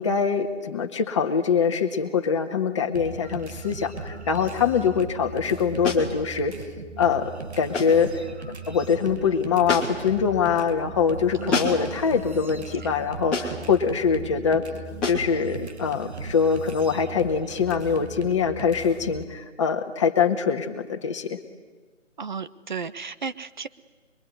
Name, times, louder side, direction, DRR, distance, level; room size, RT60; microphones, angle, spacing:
voice 1, 0.0-6.5 7.0-8.1 8.7-14.6 15.0-21.4, left 6 dB, 25° left, 3 dB, 1.8 m, -23 dB
sound 1, 2.9-19.2, right 3 dB, 60° right, 2.5 m, -38 dB
sound 2, 5.8-6.1 7.7-8.0 9.7-10.1 11.5-11.9 13.3-13.7 15.0-15.3, left 3 dB, ahead, 1.0 m, -27 dB
voice 2, 11.4-11.9 22.2-23.7, right 5 dB, 40° right, 14 dB, 1.0 m, -34 dB
26.0 x 23.5 x 9.6 m, 1.4 s
figure-of-eight pair, 165°, 38 cm